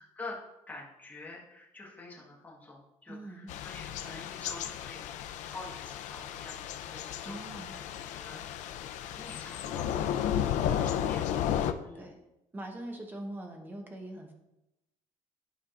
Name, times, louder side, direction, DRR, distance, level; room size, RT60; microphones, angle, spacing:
voice 1, 0.7-5.0 5.5-7.9 8.1-8.4 9.1-10.3 10.6-11.2 11.8-12.1, left 3 dB, 10° left, -4 dB, 1.3 m, -47 dB
voice 2, 3.1-3.5 7.2-7.7 10.9-11.2 11.9-12.2 12.5-14.3, right 1 dB, 15° right, 2 dB, 0.9 m, -42 dB
Thunder / Rain, 3.5-11.7, left 10 dB, 70° left, 0.4 m, -33 dB
11.0 x 4.6 x 2.4 m, 0.91 s
cardioid pair, 175°, 13 cm